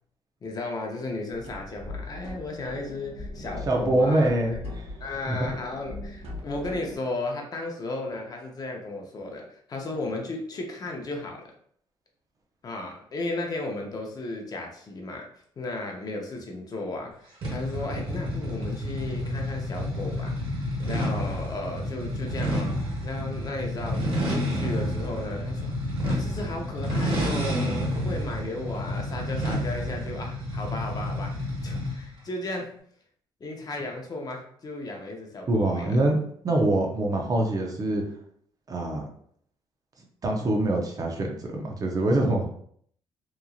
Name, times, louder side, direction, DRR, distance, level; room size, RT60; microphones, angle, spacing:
voice 1, 0.4-4.6 5.0-11.4 12.6-15.3 15.6-22.7 23.0-32.7 33.4-36.0, left 2 dB, 40° left, 1 dB, 0.6 m, -35 dB
sound 1, 1.3-7.0, left 1 dB, 85° right, 0.7 m, -40 dB
voice 2, 3.7-5.5 35.5-36.2 36.4-38.0 38.7-39.0 40.2-42.5, right 1 dB, 35° right, 0 dB, 0.6 m, -25 dB
sound 2, 17.4-32.1, equal, 65° right, 1.3 m, -30 dB
2.9 x 2.5 x 2.3 m, 0.64 s
cardioid pair, 100°, 10 cm